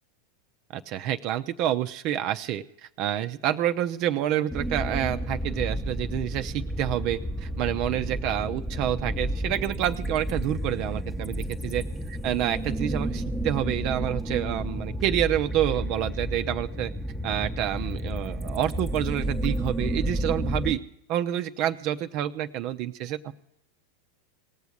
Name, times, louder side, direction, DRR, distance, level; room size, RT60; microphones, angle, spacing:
voice 1, 0.7-11.8 12.2-16.9 17.2-20.8 21.1-23.3, right 12 dB, 50° right, 10 dB, 0.6 m, -28 dB
sound 1, 4.5-20.7, equal, ahead, 0.9 m, -31 dB
19.0 x 7.0 x 8.1 m, 0.75 s
hypercardioid pair, 95°, 0 cm